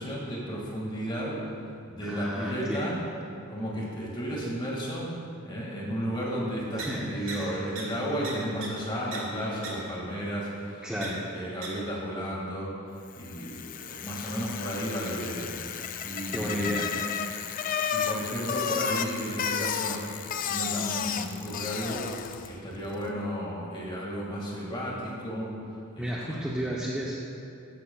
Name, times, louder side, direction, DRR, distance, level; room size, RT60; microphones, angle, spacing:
voice 1, 0.0-1.4 1.9-3.0 3.5-5.1 5.4-12.7 13.0-15.5 16.0-16.7 17.9-22.0 22.5-25.5 26.0-26.5, equal, 20° left, -4 dB, 1.9 m, -33 dB
voice 2, 2.0-3.0 6.7-7.6 10.8-11.1 16.3-16.9 26.0-27.1, equal, 5° right, -6 dB, 0.7 m, -32 dB
sound 1, 6.8-6.9 7.3-7.4 7.8-7.9 8.2-8.3 8.6-8.7 9.1-9.2 9.6-9.7 11.0-11.1 11.6-11.7, right 6 dB, 60° right, 2.0 m, -36 dB
Bicycle, 13.2-22.6, left 7 dB, 40° left, 0.3 m, -33 dB
14.5 x 10.5 x 2.3 m, 2.5 s
head